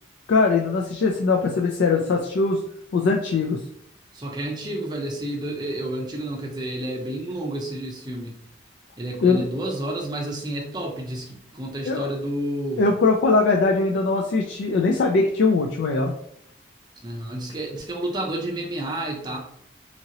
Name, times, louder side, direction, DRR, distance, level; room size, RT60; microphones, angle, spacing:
voice 1, 0.3-2.6 2.9-3.6 9.2-9.4 11.9-12.1 12.8-16.1, left 3 dB, 85° left, 0 dB, 0.4 m, -21 dB
voice 2, 4.1-8.4 9.0-12.8 17.0-19.4, right 1 dB, 25° right, -1 dB, 0.6 m, -30 dB
2.8 x 2.8 x 2.7 m, 0.71 s
head